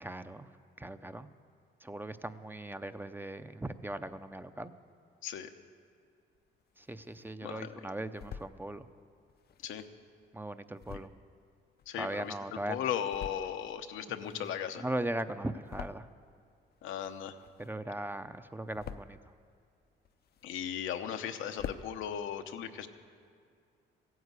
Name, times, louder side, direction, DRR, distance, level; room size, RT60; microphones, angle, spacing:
voice 1, 0.0-0.5 0.8-1.3 1.8-4.7 6.8-8.9 10.3-11.1 12.0-12.9 14.2-14.5 14.8-16.1 17.6-19.2, right 1 dB, 10° right, 10 dB, 0.5 m, -39 dB
sound 1, 6.4-7.4 7.8-8.6 9.3-12.5 12.9-13.7 14.0-16.4 16.7-18.0 18.3-19.3 19.8-20.9 21.2-21.3 21.5-21.9, left 8 dB, 50° left, 0.5 m, -47 dB
voice 2, 11.9-12.3 12.7-14.8 16.8-17.3 20.4-22.9, left 9 dB, 85° left, 6 dB, 0.9 m, -37 dB
15.5 x 9.6 x 8.2 m, 2.2 s
cardioid pair, 90°, 20 cm